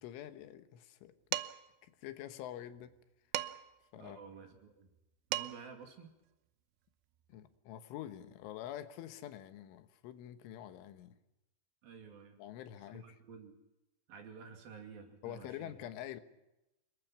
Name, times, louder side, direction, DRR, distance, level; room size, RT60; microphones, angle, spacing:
voice 1, 0.0-1.4 1.8-3.0 3.9-4.2 7.3-11.2 12.4-13.0 15.2-16.2, left 11 dB, 85° left, 9 dB, 3.7 m, -46 dB
Dishes pots and pans, 1.3-1.8 3.3-3.8 5.0-5.1 5.3-5.8, right 14 dB, 85° right, 3.4 m, -39 dB
voice 2, 3.9-4.9 5.3-6.1 11.8-12.4 12.9-13.6 14.1-15.9, right 6 dB, 55° right, 4 dB, 4.0 m, -52 dB
28.0 x 21.5 x 6.0 m, 0.95 s
omnidirectional pair, 5.5 m